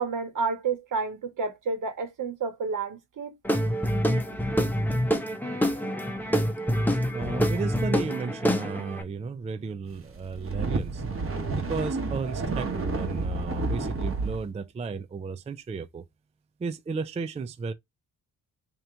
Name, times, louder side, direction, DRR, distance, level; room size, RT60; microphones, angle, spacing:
voice 1, 0.0-3.3, right 4 dB, 60° right, 1.4 m, -30 dB
Guitar / Drum, 3.4-9.0, equal, 5° left, 0.7 m, -26 dB
voice 2, 7.1-11.0 11.5-16.0 16.6-17.7, right 4 dB, 20° right, 0.3 m, -34 dB
sound 1, 10.2-14.4, right 3 dB, 40° right, 1.2 m, -30 dB
3.4 x 3.0 x 3.6 m
cardioid pair, 110°, 35 cm